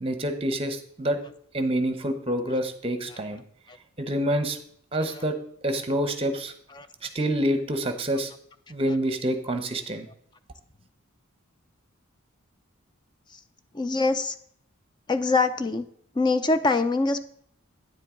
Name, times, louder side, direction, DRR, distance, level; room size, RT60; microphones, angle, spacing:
voice 1, 0.0-1.2 1.5-3.4 4.0-4.6 4.9-5.4 5.6-6.5 7.0-8.3 8.7-10.1, right 1 dB, 30° right, 9 dB, 1.0 m, -27 dB
voice 2, 13.7-14.4 15.1-15.9 16.2-17.2, left 3 dB, 20° left, 11 dB, 0.5 m, -24 dB
9.5 x 7.6 x 3.8 m, 0.63 s
head